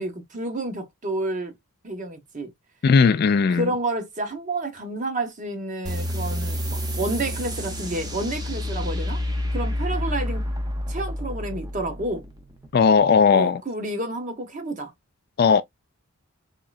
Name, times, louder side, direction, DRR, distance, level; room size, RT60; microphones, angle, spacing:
voice 1, 0.0-1.6 1.8-2.5 3.5-9.2 9.5-10.5 10.9-12.2 13.3-14.9, right 2 dB, 35° right, 0.9 m, -30 dB
voice 2, 2.8-3.7 12.7-13.6 15.4-15.6, left 5 dB, 45° left, 0.3 m, -17 dB
sound 1, 5.8-13.0, left 1 dB, 20° right, 0.6 m, -29 dB
3.7 x 3.1 x 2.3 m
head